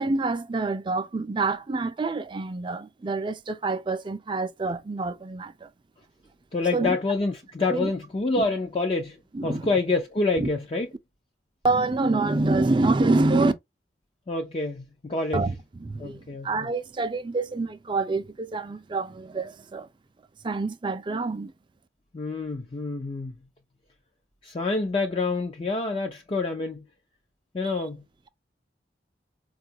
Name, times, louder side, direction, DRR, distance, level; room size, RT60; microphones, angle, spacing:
voice 1, 0.0-5.7 6.7-7.0 7.7-7.9 9.3-9.7 10.4-10.5 11.6-13.5 15.3-19.9 20.4-21.5, right 3 dB, 30° right, 0.4 m, -26 dB
voice 2, 6.5-9.2 9.4-10.9 14.3-15.5 16.0-16.5 22.1-23.4 24.4-26.8 27.5-28.0, left 3 dB, 30° left, 0.5 m, -27 dB
4.6 x 2.4 x 2.7 m
head